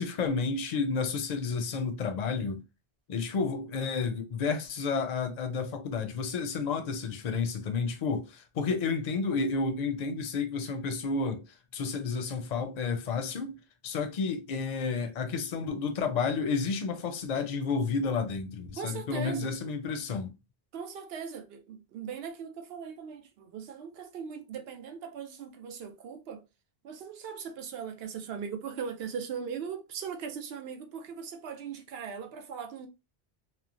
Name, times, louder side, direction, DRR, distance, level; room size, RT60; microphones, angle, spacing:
voice 1, 0.0-2.6 3.1-11.4 11.7-20.3, left 4 dB, 50° left, 0.6 m, -31 dB
voice 2, 18.8-19.5 20.7-26.4 26.8-32.9, right 6 dB, 75° right, 0.8 m, -39 dB
2.9 x 2.1 x 2.5 m
omnidirectional pair, 1.0 m